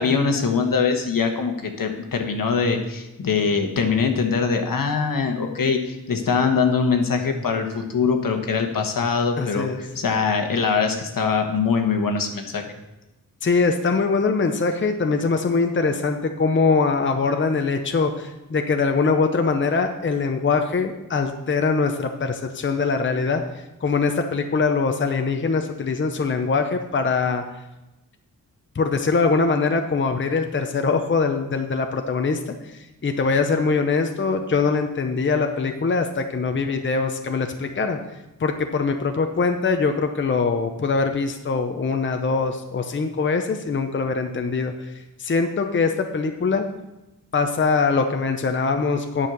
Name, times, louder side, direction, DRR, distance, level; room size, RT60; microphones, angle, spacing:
voice 1, 0.0-12.6, left 5 dB, 75° left, 4 dB, 1.3 m, -22 dB
voice 2, 9.4-9.8 13.4-27.4 28.7-38.0 38.4-44.9 45.2-46.7 47.3-49.3, left 4 dB, 35° left, 5 dB, 0.7 m, -22 dB
9.4 x 5.6 x 6.8 m, 0.98 s
wide cardioid pair, 110°, 34 cm